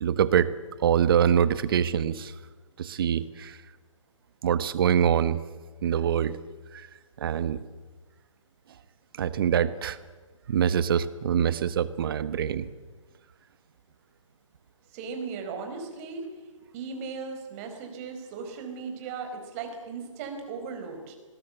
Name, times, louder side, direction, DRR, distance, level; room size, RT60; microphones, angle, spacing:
voice 1, 0.0-0.5 0.8-2.3 2.8-3.6 4.4-5.4 5.8-6.4 6.7-6.9 7.2-7.6 9.2-10.0 10.5-12.7, right 8 dB, 45° right, 14 dB, 1.4 m, -24 dB
voice 2, 14.9-16.3 16.7-21.1, right 5 dB, 25° right, 5 dB, 4.9 m, -37 dB
29.0 x 20.5 x 8.1 m, 1.3 s
figure-of-eight pair, 145°, 17 cm